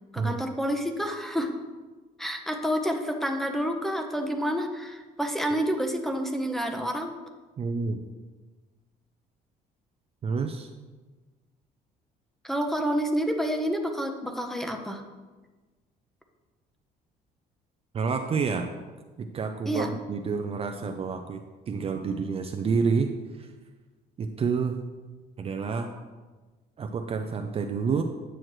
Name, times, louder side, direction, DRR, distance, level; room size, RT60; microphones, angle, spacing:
voice 1, 0.1-1.5 2.2-7.1 12.4-15.0 19.7-19.9 25.6-26.0, equal, ahead, 4 dB, 0.8 m, -29 dB
voice 2, 7.6-8.0 10.2-10.7 17.9-18.7 19.2-23.5 24.2-24.8 25.4-25.9 26.8-28.0, right 5 dB, 35° right, 5 dB, 0.5 m, -29 dB
9.0 x 6.3 x 3.1 m, 1.3 s
cardioid pair, 110°, 17 cm